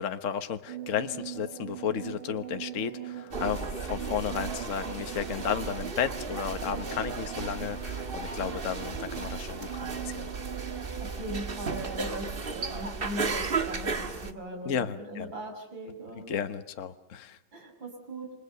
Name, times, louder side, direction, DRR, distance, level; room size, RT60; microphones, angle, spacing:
voice 1, 0.0-10.3 14.6-15.3 16.3-17.4, left 8 dB, 45° left, 8 dB, 1.3 m, -33 dB
sound 1, 0.7-12.0, right 10 dB, 90° right, 2.2 m, -41 dB
sound 2, 3.3-14.3, right 4 dB, 30° right, 1.5 m, -35 dB
sound 3, 4.1-10.1, right 3 dB, 45° right, 3.0 m, -54 dB
voice 2, 11.0-16.3 17.5-18.3, right 1 dB, 65° right, 3 dB, 6.8 m, -39 dB
29.0 x 25.5 x 6.8 m, 0.75 s
omnidirectional pair, 2.2 m